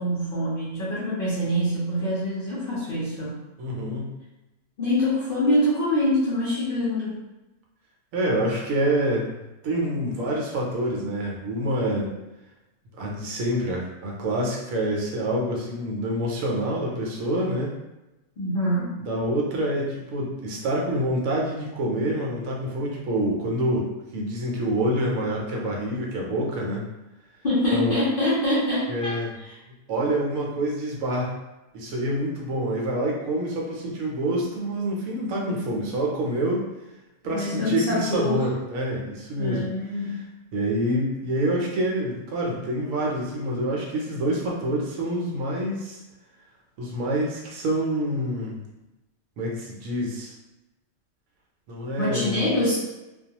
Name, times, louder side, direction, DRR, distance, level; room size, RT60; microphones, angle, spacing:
voice 1, 0.0-3.4 4.8-7.2 18.4-18.9 27.4-29.5 37.2-38.4 39.4-40.2 52.0-52.8, left 1 dB, 55° left, -8 dB, 0.6 m, -25 dB
voice 2, 3.6-4.1 8.1-12.1 13.0-17.7 19.0-26.9 27.7-28.0 28.9-29.3 29.9-31.3 31.7-36.7 37.2-39.7 40.5-46.0 46.8-48.6 49.4-50.3 51.7-52.5, right 1 dB, 70° right, -2 dB, 1.0 m, -27 dB
2.3 x 2.3 x 2.8 m, 1.0 s
omnidirectional pair, 1.5 m